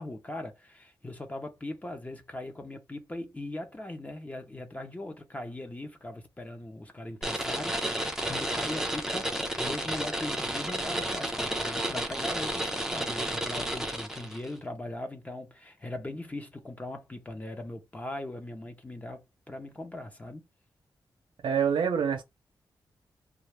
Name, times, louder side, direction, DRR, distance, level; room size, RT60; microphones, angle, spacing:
voice 1, 0.0-20.5, left 1 dB, 20° left, 0.8 m, -40 dB
sound 1, 7.2-14.5, right 1 dB, 5° right, 0.7 m, -32 dB
voice 2, 21.4-22.2, right 7 dB, 85° right, 0.7 m, -26 dB
2.5 x 2.4 x 3.2 m
wide cardioid pair, 95°, 8 cm